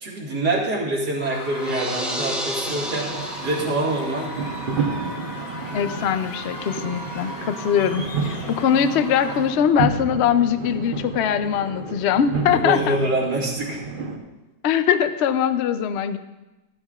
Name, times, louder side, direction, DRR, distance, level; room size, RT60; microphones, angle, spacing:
voice 1, 0.0-3.1 3.4-4.6 12.6-13.8, right 2 dB, 70° right, -3 dB, 2.5 m, -25 dB
Screaming / Cheering / Crowd, 1.2-9.8, equal, 50° left, 2.1 m, -36 dB
sound 1, 1.6-4.1, equal, ahead, 0.7 m, -31 dB
sound 2, 2.6-14.2, right 4 dB, 40° right, 0.9 m, -31 dB
voice 2, 5.7-13.0 14.6-16.2, left 8 dB, 80° left, 10 dB, 0.6 m, -22 dB
14.0 x 13.5 x 2.4 m, 1.1 s
omnidirectional pair, 1.8 m